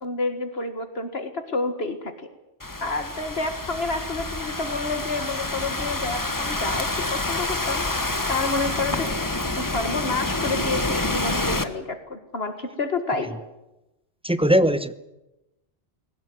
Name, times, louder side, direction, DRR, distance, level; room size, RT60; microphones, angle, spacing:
voice 1, 0.0-2.1 2.8-9.2 9.6-13.3, left 3 dB, 60° left, 1.9 m, -29 dB
Thunderstorm / Rain, 2.6-11.6, left 2 dB, 20° left, 1.1 m, -28 dB
voice 2, 14.2-14.9, equal, 5° right, 0.8 m, -19 dB
21.0 x 18.5 x 9.5 m
omnidirectional pair, 1.2 m